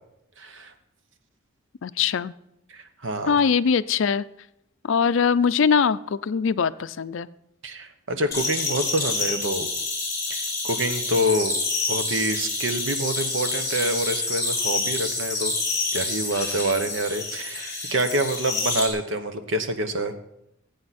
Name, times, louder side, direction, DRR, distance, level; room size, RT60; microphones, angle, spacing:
voice 1, 0.4-0.7 2.7-3.4 7.6-9.7 10.3-11.5 11.9-15.5 15.9-20.1, right 1 dB, 65° right, 8 dB, 1.1 m, -27 dB
voice 2, 1.8-2.3 3.3-4.2 4.8-7.3, left 6 dB, 70° left, 15 dB, 0.4 m, -22 dB
sound 1, 8.3-18.9, left 3 dB, 15° left, 3.8 m, -28 dB
16.0 x 8.6 x 4.2 m, 0.81 s
head